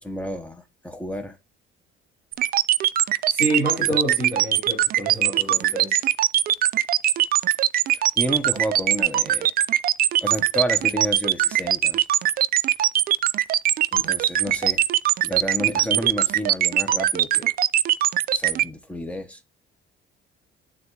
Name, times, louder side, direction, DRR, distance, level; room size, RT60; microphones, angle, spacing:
voice 1, 0.0-1.4 7.9-9.5 10.2-12.0 13.9-14.8 15.2-17.5 18.3-19.4, equal, 5° left, 1.0 m, -30 dB
sound 1, 2.3-18.6, right 12 dB, 45° right, 0.4 m, -20 dB
voice 2, 3.3-6.1, right 1 dB, 10° right, 3.5 m, -28 dB
10.5 x 3.7 x 3.3 m
cardioid pair, 120°, 20 cm